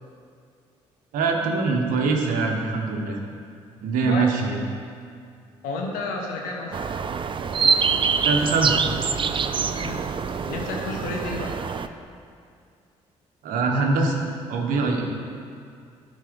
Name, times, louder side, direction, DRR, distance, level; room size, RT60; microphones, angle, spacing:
voice 1, 1.1-3.2 3.8-4.6 8.2-8.7 13.4-14.2 14.5-15.0, right 4 dB, 70° right, 2 dB, 1.1 m, -23 dB
voice 2, 5.6-6.8 9.7-10.0 10.5-11.6, left 3 dB, 75° left, 0 dB, 1.3 m, -31 dB
sound 1, 6.7-11.9, right 5 dB, 35° right, 0.5 m, -25 dB
12.0 x 4.1 x 5.3 m, 2.3 s
hypercardioid pair, 50°, 14 cm